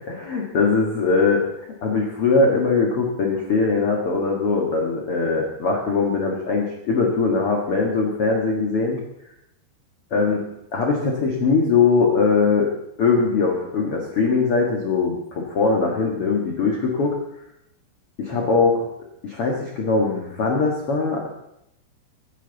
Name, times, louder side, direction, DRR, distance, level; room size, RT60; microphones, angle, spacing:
voice 1, 0.1-1.4 1.8-9.0 10.1-10.4 10.7-12.7 13.0-17.2 18.2-18.8 19.2-21.3, left 4 dB, 55° left, 0 dB, 1.7 m, -21 dB
23.5 x 10.5 x 4.1 m, 0.82 s
omnidirectional pair, 5.2 m